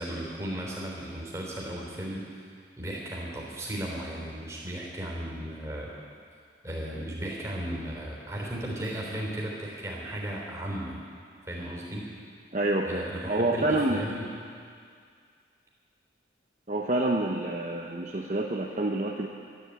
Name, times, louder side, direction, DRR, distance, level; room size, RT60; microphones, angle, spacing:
voice 1, 0.0-2.5 2.8-5.9 6.6-11.0 11.4-12.0 12.8-14.3, right 1 dB, 15° right, -3 dB, 3.7 m, -35 dB
voice 2, 12.5-14.0 16.7-19.3, right 2 dB, 40° right, 0 dB, 0.8 m, -27 dB
12.5 x 11.5 x 8.6 m, 2.2 s
head